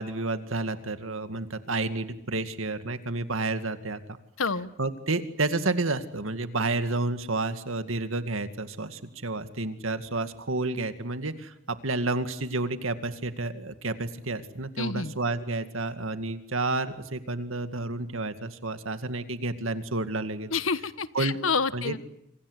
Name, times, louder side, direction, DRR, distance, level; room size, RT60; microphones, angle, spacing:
voice 1, 0.0-4.2 4.8-20.5 21.1-21.4 21.7-22.0, right 2 dB, 90° right, 9 dB, 2.2 m, -30 dB
voice 2, 4.4-4.7 14.8-15.1 20.5-22.0, left 5 dB, 85° left, 14 dB, 1.2 m, -28 dB
27.5 x 26.0 x 8.1 m, 0.79 s
head